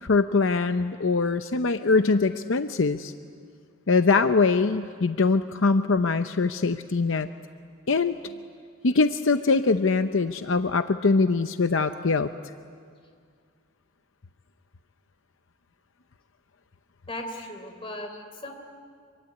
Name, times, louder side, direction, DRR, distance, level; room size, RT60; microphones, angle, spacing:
voice 1, 0.0-3.1 3.9-7.3 7.9-8.1 8.8-12.3, left 4 dB, 70° left, 9 dB, 0.7 m, -22 dB
voice 2, 17.1-18.5, left 1 dB, 25° left, 4 dB, 3.5 m, -37 dB
26.0 x 24.0 x 9.7 m, 2.1 s
head